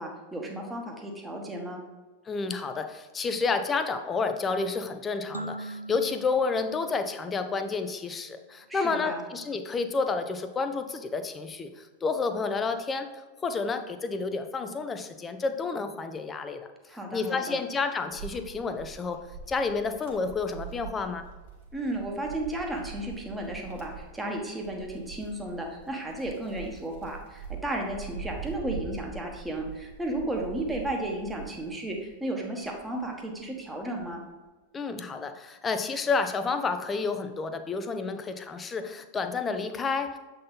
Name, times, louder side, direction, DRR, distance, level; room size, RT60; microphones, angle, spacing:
voice 1, 0.0-1.8 8.7-9.2 16.9-17.6 21.7-34.2, right 1 dB, 10° right, 0 dB, 1.2 m, -34 dB
voice 2, 2.3-13.1 13.4-16.7 17.1-19.2 19.5-21.3 34.7-40.2, left 4 dB, 20° left, 8 dB, 0.5 m, -30 dB
sound 1, 5.3-8.0, right 2 dB, 80° right, 0.3 m, -42 dB
Wind, 18.1-32.2 32.6-34.1, right 5 dB, 55° right, 1.4 m, -43 dB
7.6 x 4.1 x 3.9 m, 1.2 s
figure-of-eight pair, 90°, 0 cm